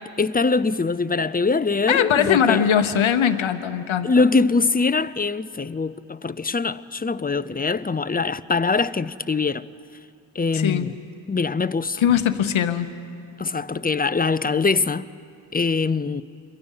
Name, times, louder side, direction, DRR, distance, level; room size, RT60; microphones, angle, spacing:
voice 1, 0.2-2.6 4.0-9.6 10.4-10.9 11.3-12.0 13.4-15.0 15.5-16.2, left 4 dB, 20° left, 0.6 m, -23 dB
voice 2, 1.9-4.3 10.5-10.9 12.0-12.9, left 8 dB, 85° left, 0.9 m, -21 dB
27.5 x 23.5 x 5.6 m
cardioid pair, 55°, 46 cm